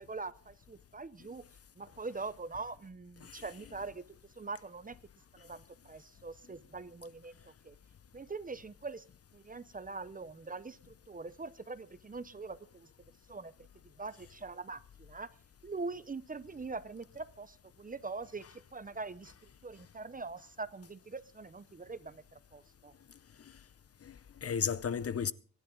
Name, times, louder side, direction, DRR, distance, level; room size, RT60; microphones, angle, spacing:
voice 1, 0.0-1.4 1.8-4.0 4.3-5.0 5.3-7.8 8.1-9.0 9.3-12.9 13.3-13.5 14.0-15.3 15.6-22.9, right 3 dB, 25° right, 0.7 m, -43 dB
voice 2, 24.0-25.3, left 7 dB, 45° left, 0.6 m, -35 dB
25.5 x 11.0 x 3.8 m
wide cardioid pair, 140°, 34 cm